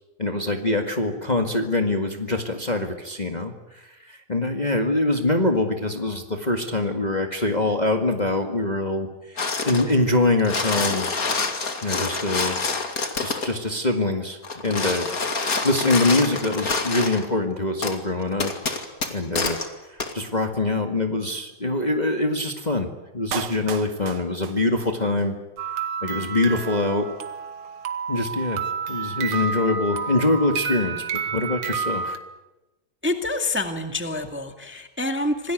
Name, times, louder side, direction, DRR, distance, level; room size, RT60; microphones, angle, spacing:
voice 1, 0.2-11.1 11.8-12.6 13.2-15.1 15.4-18.5 19.1-19.6 19.9-22.9 23.1-25.4 26.0-27.1 28.1-32.2, left 2 dB, 20° left, 5 dB, 1.8 m, -24 dB
sound 1, 9.4-9.9 10.3-13.6 14.4-17.3 17.8-18.0 18.4-19.7 20.0-20.1, left 4 dB, 45° left, 2.7 m, -27 dB
Clapping, 23.3-25.3 25.6-25.7, right 8 dB, 60° right, 1.6 m, -35 dB
sound 2, 25.6-32.2, right 6 dB, 80° right, 2.4 m, -30 dB
voice 2, 33.0-35.5, left 2 dB, 5° right, 6 dB, 1.7 m, -27 dB
27.0 x 18.5 x 9.2 m, 1.0 s
omnidirectional pair, 2.3 m